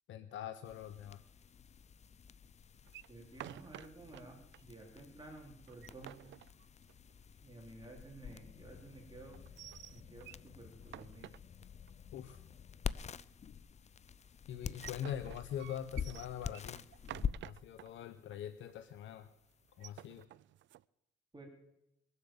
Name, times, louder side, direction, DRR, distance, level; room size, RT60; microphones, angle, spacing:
voice 1, 0.1-1.2 12.1-12.4 14.5-16.8 17.4-19.3 19.8-20.3, left 9 dB, 75° left, 10 dB, 0.8 m, -43 dB
sound 1, 0.6-20.2, left 7 dB, 35° left, 0.5 m, -47 dB
sound 2, 2.9-4.2 4.5-4.6 5.0-5.1 5.6-7.1 9.3-10.5 10.8-11.9 14.5-17.9 18.3-18.4 18.7-19.0 19.6-20.8, right 14 dB, 70° right, 0.5 m, -51 dB
voice 2, 3.1-6.1 7.4-9.4 9.9-11.3 21.3-21.5, right 2 dB, 20° right, 1 dB, 3.9 m, -53 dB
22.5 x 8.1 x 7.2 m, 0.83 s
cardioid pair, 90°, 20 cm